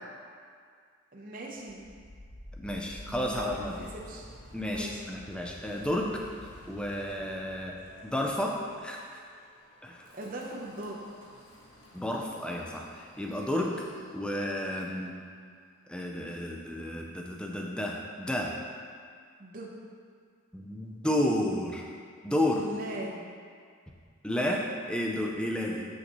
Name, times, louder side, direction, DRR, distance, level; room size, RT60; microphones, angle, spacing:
voice 1, 1.1-1.9 2.7-4.3 4.7-5.0 10.1-11.1 19.4-19.7 22.5-23.3, right 1 dB, 40° right, -2 dB, 0.7 m, -40 dB
Wind, 1.5-14.5, left 1 dB, 65° left, 1.3 m, -51 dB
voice 2, 2.6-3.9 4.5-6.2 6.7-7.8 8.0-9.2 9.8-10.1 11.9-13.8 14.1-15.2 15.9-18.5 20.5-21.9 22.2-22.6 24.2-25.9, left 1 dB, 5° left, 0 dB, 0.5 m, -31 dB
6.8 x 6.4 x 3.0 m, 2.1 s
head